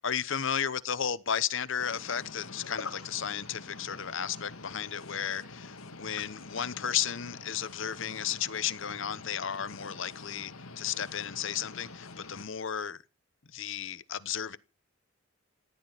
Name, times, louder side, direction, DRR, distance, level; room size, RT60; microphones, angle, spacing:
voice 1, 0.0-13.0 13.5-14.6, left 8 dB, 65° left, 0.9 m, -34 dB
sound 1, 1.8-12.5, left 3 dB, 90° left, 2.1 m, -46 dB
14.5 x 11.0 x 8.1 m
head